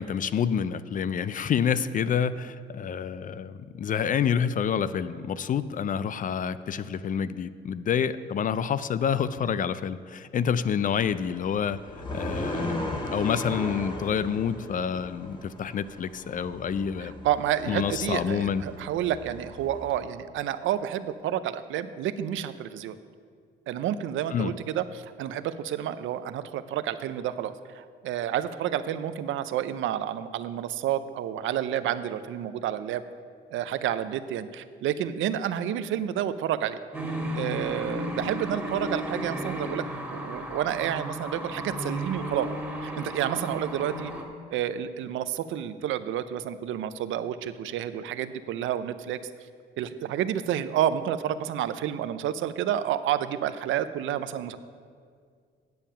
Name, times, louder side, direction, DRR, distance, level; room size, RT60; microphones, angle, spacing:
voice 1, 0.0-11.8 12.1-17.1 17.7-18.6 24.3-24.5, left 7 dB, 45° left, 15 dB, 0.4 m, -28 dB
sound 1, 11.0-20.0, left 1 dB, 25° left, 1.5 m, -37 dB
voice 2, 17.0-23.0 23.7-33.0 33.5-36.8 37.3-39.8 40.1-42.5 42.8-44.1 44.5-49.2 49.8-54.6, right 10 dB, 80° right, 13 dB, 0.5 m, -30 dB
sound 2, 36.9-44.2, equal, 5° right, 1.8 m, -34 dB
9.3 x 7.2 x 5.6 m, 2.1 s
cardioid pair, 90°, 20 cm